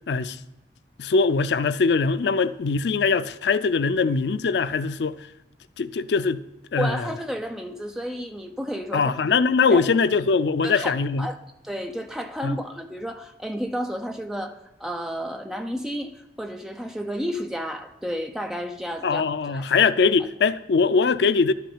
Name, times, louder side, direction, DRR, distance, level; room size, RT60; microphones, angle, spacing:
voice 1, 1.0-5.2 5.8-6.4 6.7-7.0 8.9-11.3 12.4-12.6 19.0-21.5, left 4 dB, 75° left, 0.4 m, -22 dB
voice 2, 6.8-9.1 9.7-9.9 10.6-11.4 11.6-19.9, equal, 5° right, 0.7 m, -32 dB
11.5 x 6.0 x 7.1 m
head